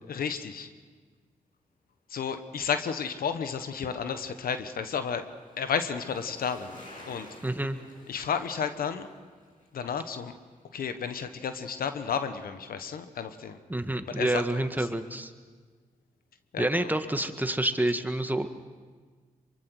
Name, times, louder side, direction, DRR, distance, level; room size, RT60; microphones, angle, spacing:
voice 1, 0.1-0.7 2.1-5.2 5.6-6.8 7.1-7.3 8.1-9.1 9.7-10.3 10.7-13.6 14.1-14.9 16.5-16.9, left 7 dB, 80° left, 9 dB, 1.2 m, -32 dB
Bicycle, 3.1-11.4 11.7-11.8, left 1 dB, 60° left, 7.8 m, -53 dB
voice 2, 7.4-7.8 13.7-15.3 16.6-18.6, right 1 dB, 10° right, 8 dB, 1.8 m, -28 dB
24.0 x 23.0 x 6.4 m, 1.5 s
supercardioid pair, 40°, 15 cm